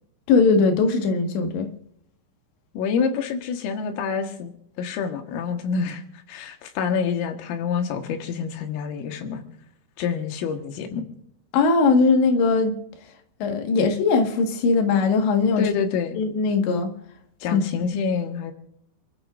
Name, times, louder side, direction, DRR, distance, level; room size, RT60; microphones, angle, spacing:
voice 1, 0.3-1.7 11.5-12.8 13.4-15.7 16.1-16.9 17.5-17.6, left 4 dB, 70° left, 3.8 m, -20 dB
voice 2, 2.8-4.5 4.8-6.0 6.3-9.4 10.0-11.0 15.6-16.2 17.4-18.5, left 6 dB, 90° left, 4.0 m, -27 dB
29.5 x 13.5 x 2.5 m
omnidirectional pair, 5.7 m